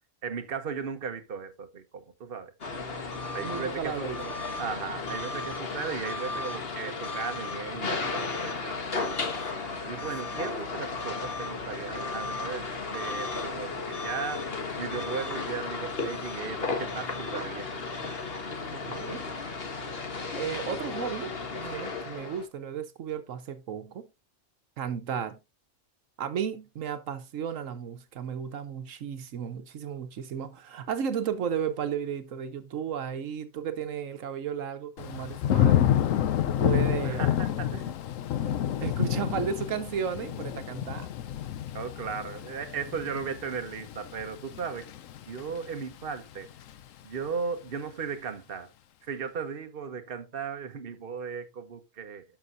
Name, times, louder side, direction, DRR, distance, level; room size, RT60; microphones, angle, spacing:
voice 1, 0.2-2.5 3.3-4.3 4.6-8.8 9.8-14.5 14.8-17.8 37.0-37.9 41.7-44.9 45.3-46.5 47.0-48.7 49.0-52.2, right 6 dB, 50° right, 1.2 m, -36 dB
sound 1, 2.6-22.5, left 4 dB, 50° left, 1.5 m, -34 dB
voice 2, 3.4-4.4 9.9-10.1 18.7-19.3 20.3-24.1 24.8-25.4 26.2-35.9 36.5-37.3 38.4-38.6 38.8-41.1, right 8 dB, 85° right, 1.3 m, -34 dB
Thunder / Rain, 35.0-45.9 46.3-46.8, left 11 dB, 85° left, 1.1 m, -29 dB
12.0 x 6.0 x 2.6 m
omnidirectional pair, 1.3 m